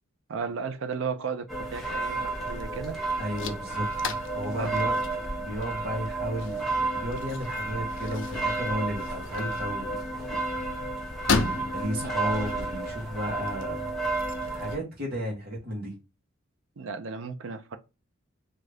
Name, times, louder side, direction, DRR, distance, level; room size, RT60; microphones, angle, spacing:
voice 1, 0.3-3.0 4.5-4.7 11.5-11.7 12.0-12.3 16.8-17.8, right 5 dB, 65° right, 0.4 m, -35 dB
sound 1, 1.5-14.8, right 2 dB, ahead, 0.6 m, -32 dB
sound 2, 2.4-14.8, left 4 dB, 60° left, 0.5 m, -37 dB
voice 2, 3.2-3.9 4.3-10.0 11.4-13.9 14.5-15.9, equal, 45° right, 1.1 m, -33 dB
2.7 x 2.4 x 3.2 m
head